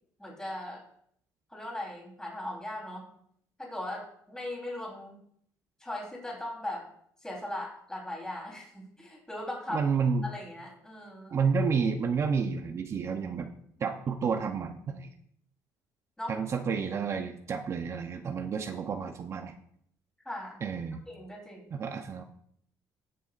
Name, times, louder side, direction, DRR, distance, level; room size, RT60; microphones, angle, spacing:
voice 1, 0.2-0.8 1.5-3.1 3.6-5.2 5.8-6.9 7.2-9.9 10.2-11.4 13.8-13.9 16.2-16.4 20.3-20.6 21.1-21.7, left 1 dB, 10° left, -2 dB, 3.7 m, -39 dB
voice 2, 9.7-10.3 11.3-13.5 13.8-15.1 16.3-19.5 20.6-21.0 21.7-22.2, right 5 dB, 40° right, 5 dB, 0.8 m, -30 dB
18.5 x 6.8 x 2.5 m, 0.68 s
cardioid pair, 110°, 7 cm